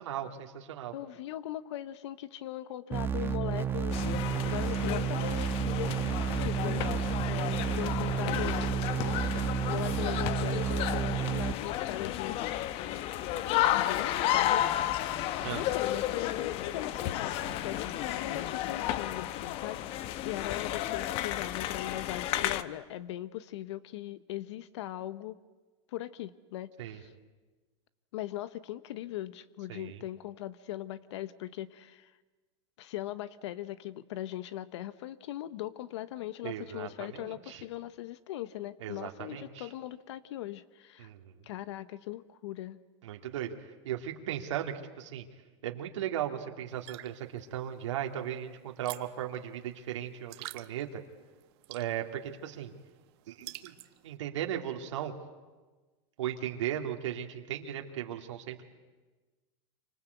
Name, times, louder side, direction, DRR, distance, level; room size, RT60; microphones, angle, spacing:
voice 1, 0.0-0.9 13.3-13.6 15.4-15.7 17.4-17.5 26.8-27.0 29.7-30.0 36.4-37.6 38.8-39.7 41.0-41.4 43.0-43.5 43.8-45.3 45.6-51.0 51.7-52.7 53.3-53.7 54.0-55.1 56.2-58.6, right 11 dB, 90° right, 3 dB, 2.7 m, -37 dB
voice 2, 0.9-6.9 7.2-8.7 9.7-12.4 13.7-14.7 15.5-25.4 25.9-27.1 28.1-32.1 32.8-41.1 41.4-42.8, left 14 dB, 70° left, 15 dB, 1.0 m, -40 dB
sound 1, 2.9-11.5, right 7 dB, 15° right, 1.1 m, -31 dB
sound 2, 3.9-22.6, left 13 dB, 40° left, 0.9 m, -32 dB
sound 3, 46.7-54.2, right 18 dB, 60° right, 1.4 m, -49 dB
27.5 x 25.5 x 8.3 m, 1.3 s
supercardioid pair, 150°, 15 cm